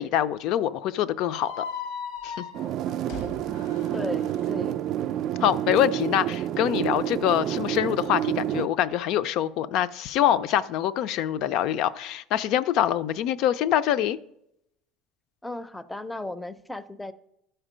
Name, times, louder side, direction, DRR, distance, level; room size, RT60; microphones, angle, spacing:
voice 1, 0.0-1.6 2.2-2.5 5.4-14.2, left 11 dB, 60° left, 0.4 m, -25 dB
sound 1, 1.3-4.5, left 6 dB, 90° left, 1.0 m, -38 dB
sound 2, 2.5-8.7, right 11 dB, 50° right, 0.3 m, -29 dB
voice 2, 3.9-5.1 15.4-17.1, left 2 dB, 5° left, 0.5 m, -36 dB
13.0 x 4.5 x 5.0 m
cardioid pair, 135°, 0 cm